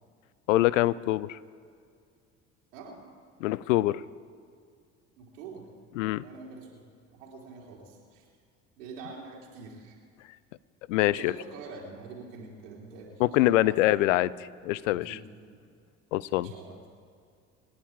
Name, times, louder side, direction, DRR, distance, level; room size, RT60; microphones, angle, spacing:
voice 1, 0.5-1.4 3.4-4.0 6.0-6.2 10.9-11.3 13.2-14.3 14.6-15.2 16.1-16.5, left 16 dB, 80° left, 21 dB, 0.6 m, -24 dB
voice 2, 5.2-5.7 6.2-6.8 7.1-8.3 8.8-10.0 11.0-13.9 14.9-15.3 16.3-16.8, right 4 dB, 80° right, -3 dB, 3.5 m, -45 dB
27.0 x 10.5 x 4.7 m, 2.3 s
hypercardioid pair, 65°, 38 cm